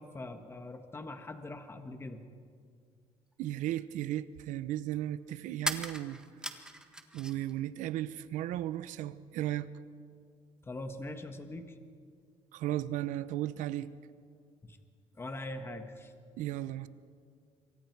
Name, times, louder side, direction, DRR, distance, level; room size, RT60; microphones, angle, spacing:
voice 1, 0.0-2.2 10.6-11.7 14.6-14.8 15.2-16.1, left 2 dB, 20° left, 1.6 m, -42 dB
sound 1, 3.3-3.4 5.6-7.5 7.8-8.7, right 1 dB, 5° right, 1.5 m, -39 dB
voice 2, 3.4-6.2 7.1-9.7 12.5-13.9 16.4-16.9, right 13 dB, 80° right, 0.8 m, -35 dB
27.0 x 24.0 x 4.7 m
cardioid pair, 115°, 13 cm